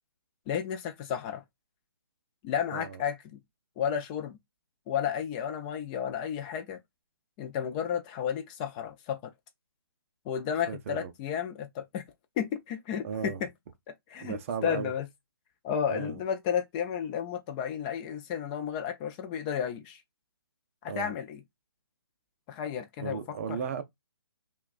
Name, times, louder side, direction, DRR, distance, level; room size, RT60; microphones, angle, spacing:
voice 1, 0.5-1.4 2.4-3.4 3.8-4.4 4.9-6.8 7.4-9.3 10.3-12.0 12.4-13.5 14.1-15.1 15.6-20.0 21.0-21.4 22.5-23.6, left 8 dB, 20° left, 0.5 m, -32 dB
voice 2, 10.7-11.1 13.0-13.4 14.2-14.9 15.9-16.2 20.9-21.1 23.0-23.8, right 7 dB, 35° right, 0.6 m, -35 dB
5.7 x 2.3 x 2.4 m
hypercardioid pair, 150°, 13 cm